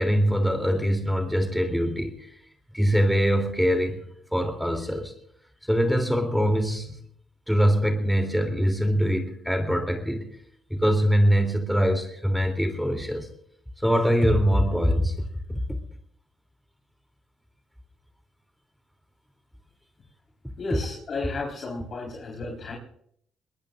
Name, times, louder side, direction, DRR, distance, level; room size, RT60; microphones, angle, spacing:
voice 1, 0.0-2.3 2.7-4.0 4.3-5.1 5.6-7.0 7.5-10.3 10.7-13.3 13.8-15.1 15.5-15.6, equal, ahead, 5 dB, 3.1 m, -23 dB
voice 2, 20.6-22.8, left 3 dB, 55° left, -1 dB, 4.4 m, -33 dB
23.0 x 20.0 x 2.6 m, 0.67 s
hypercardioid pair, 55°, 0 cm